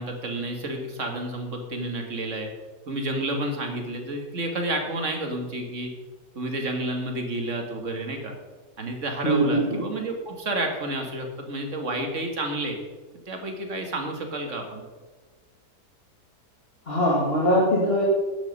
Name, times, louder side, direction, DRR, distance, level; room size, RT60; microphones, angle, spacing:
voice 1, 0.0-2.5 2.9-5.9 6.4-8.3 8.8-12.8 13.3-14.8, right 1 dB, 45° right, 3 dB, 2.1 m, -30 dB
voice 2, 9.2-9.8 16.9-18.0, equal, 35° left, -5 dB, 2.2 m, -22 dB
11.5 x 9.2 x 5.4 m, 1.3 s
omnidirectional pair, 1.9 m